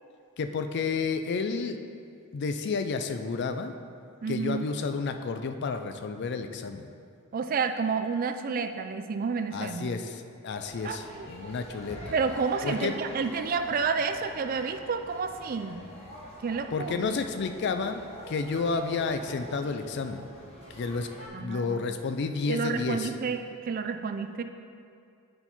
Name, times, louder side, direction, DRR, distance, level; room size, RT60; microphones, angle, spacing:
voice 1, 0.4-1.8 2.3-3.7 4.3-6.9 9.5-12.1 12.6-12.9 16.7-18.0 18.3-20.2 20.7-21.1 21.4-23.1, left 4 dB, 50° left, 8 dB, 0.4 m, -31 dB
voice 2, 4.2-4.7 7.3-9.9 10.8-11.3 12.1-15.8 16.4-17.1 21.3-21.9 22.5-24.4, right 5 dB, 40° right, 8 dB, 0.3 m, -30 dB
sound 1, 10.5-21.3, equal, 30° left, 1.1 m, -45 dB
7.7 x 4.4 x 4.1 m, 2.4 s
head